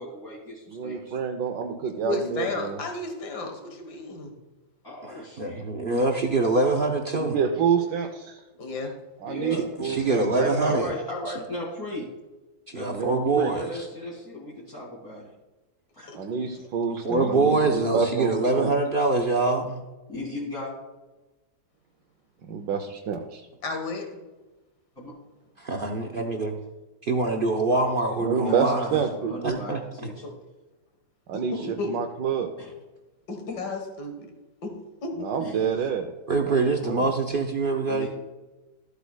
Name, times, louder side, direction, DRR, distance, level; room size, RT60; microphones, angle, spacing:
voice 1, 0.0-1.1 4.8-5.6 9.3-9.6 10.3-12.1 12.7-15.3 15.9-16.1 20.1-20.7 25.0-25.1 27.7-27.8 28.3-30.2 32.6-32.7 35.4-35.9 37.9-38.1, left 1 dB, 10° left, -8 dB, 2.4 m, -37 dB
voice 2, 0.7-2.8 7.1-8.4 9.2-10.7 12.9-13.5 16.1-18.7 22.4-23.5 28.2-29.6 31.3-32.5 35.2-36.1 36.4-37.1, right 6 dB, 85° right, 3 dB, 1.3 m, -28 dB
voice 3, 2.0-4.3 8.6-8.9 16.1-16.2 17.3-17.4 23.6-24.1 30.2-30.3 31.5-31.9 33.3-34.3 34.6-34.7 35.0-35.1, left 3 dB, 70° left, 4 dB, 2.0 m, -32 dB
voice 4, 5.1-7.4 9.8-10.9 12.7-13.9 17.0-19.8 25.6-26.6 27.0-29.0 29.4-29.8 36.3-38.1, right 3 dB, 60° right, 2 dB, 0.5 m, -24 dB
14.0 x 8.2 x 2.3 m, 1.1 s
omnidirectional pair, 1.9 m